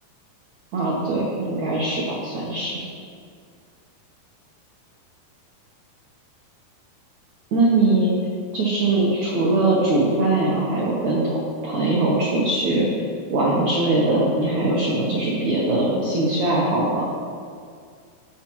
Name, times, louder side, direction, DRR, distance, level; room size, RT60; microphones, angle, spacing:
voice 1, 0.7-2.7 7.5-8.1 8.5-12.9 13.3-17.1, right 2 dB, 80° right, -5 dB, 1.6 m, -21 dB
17.5 x 5.8 x 3.0 m, 2.2 s
omnidirectional pair, 4.9 m